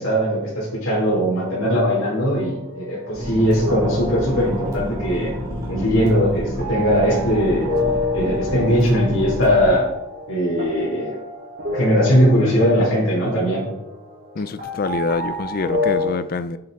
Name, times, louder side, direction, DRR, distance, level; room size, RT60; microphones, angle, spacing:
voice 1, 0.0-5.3 5.7-7.7 8.1-9.9 10.3-11.2 11.7-13.6, equal, 80° left, 2.9 m, -19 dB
sound 1, 1.3-16.1, left 2 dB, 45° right, 3.1 m, -30 dB
sound 2, 3.1-9.7, equal, 15° right, 2.8 m, -30 dB
voice 2, 14.4-16.6, left 4 dB, 45° left, 0.4 m, -25 dB
8.5 x 7.8 x 3.7 m
head